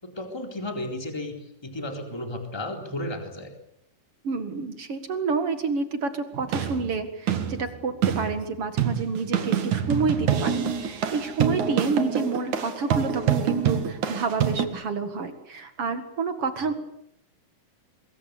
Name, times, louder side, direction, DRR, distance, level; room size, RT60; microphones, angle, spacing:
voice 1, 0.0-3.5 16.6-16.7, left 1 dB, 10° left, 4 dB, 3.7 m, -34 dB
voice 2, 4.2-16.7, right 4 dB, 50° right, 9 dB, 2.6 m, -29 dB
sound 1, 6.3-14.7, right 8 dB, 65° right, 3.4 m, -26 dB
25.5 x 21.5 x 8.4 m, 0.72 s
omnidirectional pair, 3.7 m